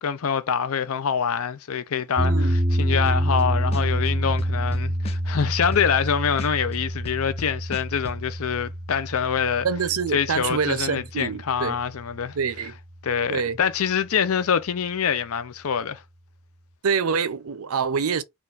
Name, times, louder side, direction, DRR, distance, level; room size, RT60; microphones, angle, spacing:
voice 1, 0.0-9.7 10.1-12.4 13.0-16.0, left 7 dB, 75° left, 0.5 m, -25 dB
sound 1, 2.2-12.4, equal, 25° right, 0.5 m, -27 dB
voice 2, 2.2-2.6 9.6-11.8 12.3-12.7 13.3-13.6 16.8-18.2, right 6 dB, 80° right, 0.6 m, -26 dB
sound 2, 3.1-3.4 3.7-6.1 6.4-8.2, left 2 dB, 25° left, 0.5 m, -36 dB
4.4 x 2.4 x 3.9 m
head